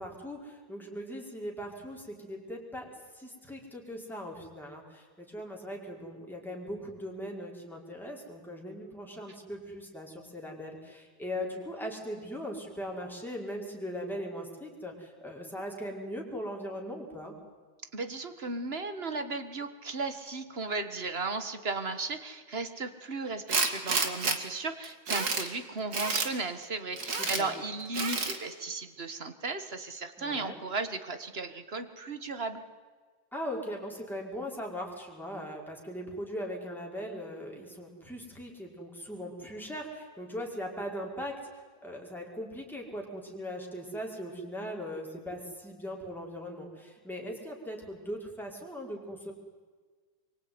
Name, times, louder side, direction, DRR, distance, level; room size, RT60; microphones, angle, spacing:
voice 1, 0.0-2.9 3.1-17.3 27.2-27.5 30.2-30.6 33.3-41.4 41.8-49.3, equal, ahead, -1 dB, 5.2 m, -39 dB
voice 2, 17.9-32.6, right 3 dB, 30° right, 10 dB, 1.7 m, -35 dB
Tools, 23.5-24.4 24.8-25.5 25.9-26.3 27.0-27.4 27.9-28.4, right 4 dB, 50° right, 2.7 m, -29 dB
26.0 x 24.0 x 9.7 m, 1.5 s
omnidirectional pair, 2.2 m